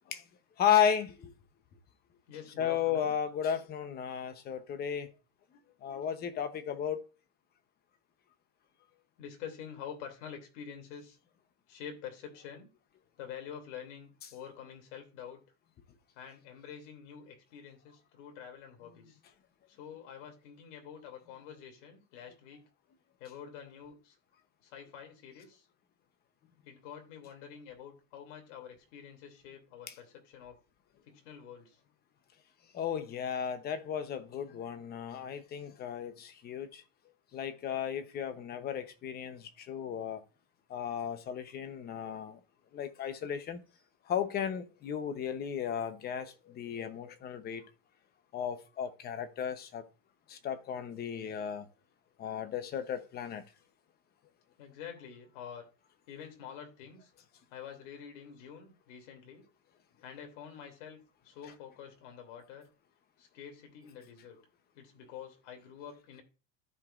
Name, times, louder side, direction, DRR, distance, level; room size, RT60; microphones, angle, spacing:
voice 1, 0.6-1.3 2.6-5.1 5.8-7.0 29.9-30.0 32.7-36.8 37.3-40.2 40.7-42.4 42.7-43.6 44.1-47.6 48.3-49.8 50.3-51.6 52.2-53.4, left 8 dB, 25° left, 0.8 m, -34 dB
voice 2, 2.3-3.1 9.2-11.2 11.7-12.7 13.2-15.4 16.2-19.2 19.7-22.6 23.2-24.1 24.6-25.6 26.7-30.6 31.1-31.8 54.6-55.7 56.1-57.1 57.5-59.4 60.0-61.0 61.2-62.7 63.2-64.4 64.7-66.2, left 8 dB, 70° left, 2.8 m, -47 dB
14.0 x 4.9 x 2.5 m
cardioid pair, 165°, 38 cm